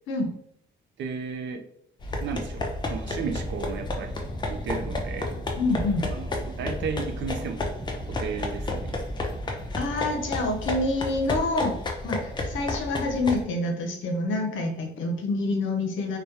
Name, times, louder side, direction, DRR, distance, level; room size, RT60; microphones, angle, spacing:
voice 1, 1.0-1.7 2.2-5.4 6.1-7.7 8.1-9.0, right 5 dB, 65° right, 7 dB, 0.4 m, -34 dB
sound 1, 2.0-13.4, left 2 dB, 25° left, 0.4 m, -32 dB
sound 2, 2.9-10.6, equal, 15° right, 0.8 m, -39 dB
voice 2, 5.6-6.1 9.8-11.8 12.0-16.2, left 2 dB, 75° left, 3 dB, 0.6 m, -27 dB
2.2 x 2.1 x 2.8 m, 0.69 s
cardioid pair, 90°, 20 cm